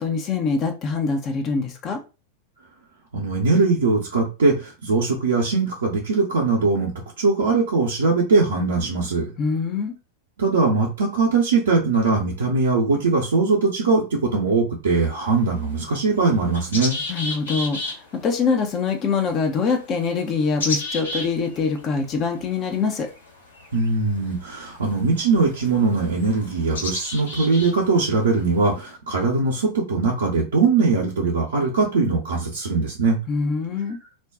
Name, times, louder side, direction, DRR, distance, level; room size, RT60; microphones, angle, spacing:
voice 1, 0.0-2.0 9.4-9.9 17.1-23.1 33.3-34.0, left 5 dB, 30° left, 5 dB, 0.5 m, -24 dB
voice 2, 3.1-6.9 7.2-9.3 10.4-17.0 23.7-33.2, right 3 dB, 65° right, -3 dB, 0.7 m, -21 dB
sound 1, 15.0-28.9, left 2 dB, 70° left, 1.1 m, -35 dB
2.5 x 2.2 x 3.5 m, 0.30 s
figure-of-eight pair, 90°, 0 cm